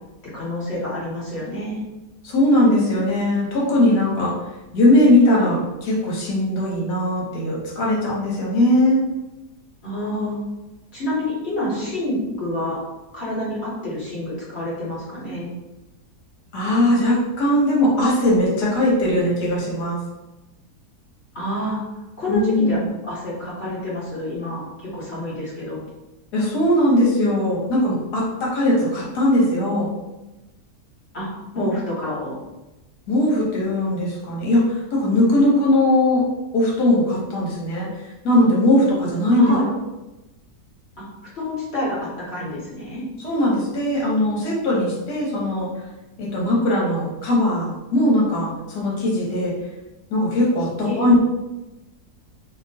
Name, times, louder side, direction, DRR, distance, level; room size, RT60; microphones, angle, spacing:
voice 1, 0.3-1.8 9.8-10.4 10.9-12.8 13.1-15.5 21.3-21.8 22.2-22.8 23.1-25.8 31.1-31.3 31.5-32.3 39.4-39.7 41.3-43.0 50.9-51.1, left 1 dB, 45° left, -7 dB, 1.3 m, -28 dB
voice 2, 2.2-4.3 4.7-9.0 16.5-20.0 22.3-22.8 26.3-29.9 33.1-36.2 36.5-37.9 38.2-39.5 43.2-45.7 46.2-49.5 50.1-51.2, left 1 dB, 75° left, -4 dB, 1.6 m, -19 dB
2.9 x 2.9 x 2.6 m, 1.0 s
omnidirectional pair, 1.7 m